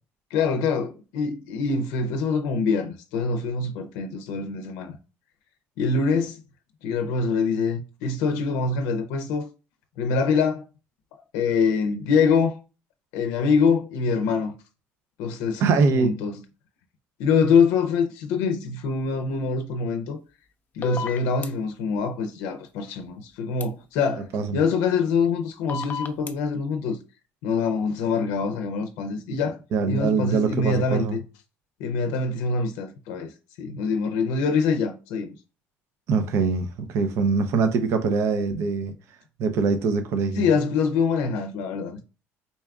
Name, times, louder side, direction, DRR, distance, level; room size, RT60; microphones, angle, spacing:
voice 1, 0.3-5.0 5.8-6.4 6.8-9.5 10.0-10.6 11.1-12.6 13.1-14.5 15.2-15.6 15.9-16.4 17.2-20.2 20.7-27.0 27.4-29.6 29.9-31.2 31.8-33.3 33.6-35.3 40.3-42.0, left 5 dB, 90° left, 0.5 m, -24 dB
voice 2, 15.6-16.1 24.3-24.6 29.7-31.2 36.1-38.9 39.4-40.5, right 4 dB, 65° right, 0.6 m, -23 dB
sound 1, 20.8-21.5 23.6-23.7 25.7-26.3, left 4 dB, 35° left, 0.5 m, -31 dB
4.1 x 2.3 x 3.5 m
cardioid pair, 120°, 5 cm